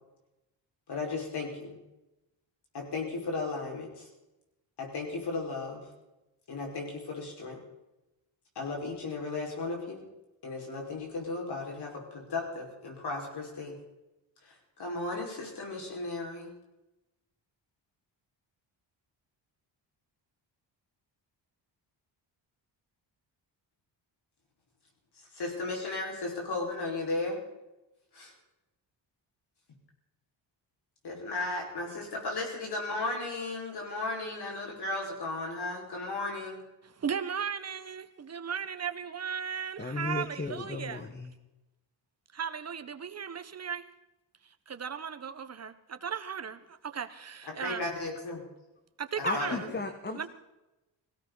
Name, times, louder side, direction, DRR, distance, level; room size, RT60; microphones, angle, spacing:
voice 1, 0.9-1.8 2.7-4.1 4.8-5.8 6.5-7.6 8.6-10.0 10.4-13.8 14.4-16.5 25.3-27.4 28.1-28.3 31.0-36.6 47.5-48.4 49.2-49.6, left 3 dB, 60° left, 5.4 m, -35 dB
voice 2, 36.8-41.0 42.3-43.9 44.4-47.9 49.0-49.7 50.1-50.3, right 7 dB, 35° right, 1.3 m, -36 dB
voice 3, 39.8-41.3 49.2-50.3, left 3 dB, 20° left, 1.5 m, -35 dB
19.0 x 16.5 x 4.1 m
cardioid pair, 115°, 45 cm